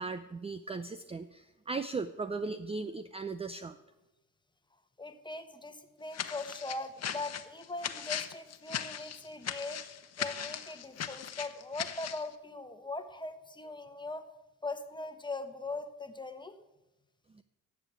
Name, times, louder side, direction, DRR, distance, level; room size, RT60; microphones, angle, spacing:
voice 1, 0.0-3.8, right 4 dB, 15° right, 12 dB, 0.5 m, -37 dB
voice 2, 5.0-9.8 10.2-14.2 14.6-16.6, left 2 dB, 10° left, 8 dB, 1.3 m, -40 dB
sound 1, 6.1-12.3, left 9 dB, 45° left, 1.1 m, -38 dB
10.5 x 7.3 x 8.9 m, 1.0 s
supercardioid pair, 80°, 37 cm